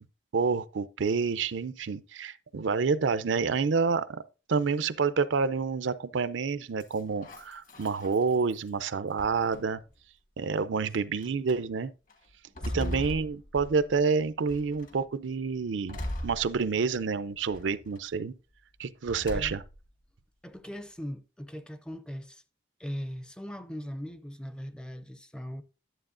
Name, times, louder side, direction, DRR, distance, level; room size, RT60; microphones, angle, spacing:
voice 1, 0.3-4.2 4.5-9.8 10.4-11.9 12.6-16.0 16.2-18.3 18.8-19.6, right 5 dB, 80° right, 0.5 m, -28 dB
sound 1, 6.8-8.7 9.2-9.9 10.7-10.8 11.2-11.6 12.1-14.0 14.5-15.0 15.9-17.0 17.5-18.1 19.0-19.9, left 1 dB, 45° left, 1.3 m, -39 dB
voice 2, 12.6-13.1 19.3-19.6 20.4-22.4 22.8-25.6, equal, 5° left, 0.4 m, -40 dB
11.0 x 7.5 x 2.5 m
head